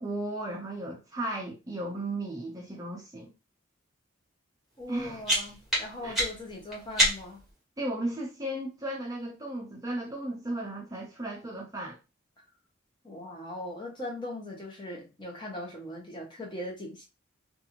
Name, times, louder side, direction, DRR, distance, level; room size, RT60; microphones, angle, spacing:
voice 1, 0.0-3.3 4.9-5.2 6.0-6.1 7.8-12.0, right 1 dB, 15° right, 0.5 m, -35 dB
voice 2, 4.8-7.4 13.0-17.0, left 1 dB, 25° left, 0.8 m, -39 dB
sound 1, 4.8-7.5, equal, ahead, 1.1 m, -29 dB
2.6 x 2.5 x 2.8 m
head